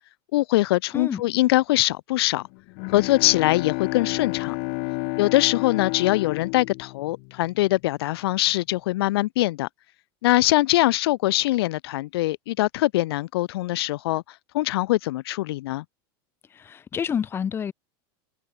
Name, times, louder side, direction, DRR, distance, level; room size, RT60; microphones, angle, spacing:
voice 1, 0.3-2.4 2.9-4.5 5.2-9.7 10.2-14.2 14.5-15.8, left 17 dB, 80° left, 0.8 m, -22 dB
Bowed string instrument, 2.4-7.9, left 40 dB or more, 45° left, 2.9 m, -31 dB
voice 2, 16.5-17.7, left 7 dB, 20° left, 6.8 m, -28 dB
supercardioid pair, 170°, 13 cm